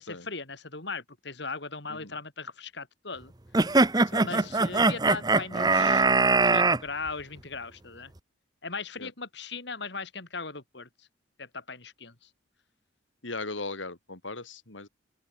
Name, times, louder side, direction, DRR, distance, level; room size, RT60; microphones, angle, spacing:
voice 1, 0.0-3.3 4.2-6.1 6.4-8.1 8.6-11.1 11.4-12.3, left 4 dB, 60° left, 3.2 m, -38 dB
sound 1, 3.5-6.8, right 3 dB, 20° right, 0.8 m, -22 dB
voice 2, 4.1-4.5 9.0-9.1 13.2-14.9, left 3 dB, 75° left, 3.2 m, -38 dB
open air
head